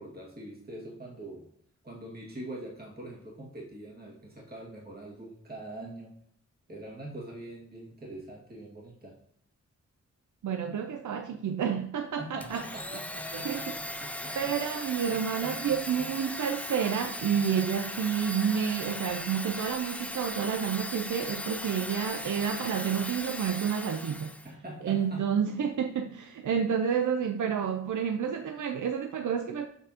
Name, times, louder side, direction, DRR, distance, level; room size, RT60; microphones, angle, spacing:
voice 1, 0.0-1.5 1.8-6.1 6.7-9.2 12.2-14.6 15.0-16.1 24.4-25.3, right 1 dB, 30° right, 2.1 m, -43 dB
voice 2, 10.4-12.6 13.3-13.6 14.4-24.3 24.8-29.7, right 7 dB, 85° right, 0.6 m, -30 dB
Domestic sounds home sounds, 12.4-24.5, left 1 dB, 5° left, 0.5 m, -38 dB
7.1 x 6.0 x 2.8 m
wide cardioid pair, 105°, 29 cm